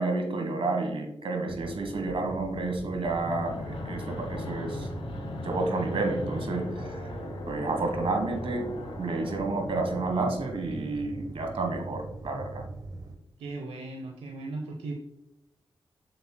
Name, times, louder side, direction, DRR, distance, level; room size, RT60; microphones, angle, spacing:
voice 1, 0.0-4.9 5.4-7.1 7.5-8.7 9.0-12.6, right 3 dB, 70° right, 4 dB, 1.4 m, -30 dB
sound 1, 1.5-13.2, right 2 dB, 40° right, 1.0 m, -41 dB
Fixed-wing aircraft airplane, 3.1-10.2, left 2 dB, 70° left, 1.5 m, -38 dB
voice 2, 13.4-14.9, right 2 dB, 90° right, 3 dB, 0.7 m, -37 dB
7.7 x 7.2 x 2.2 m, 0.88 s
cardioid pair, 50°, 10 cm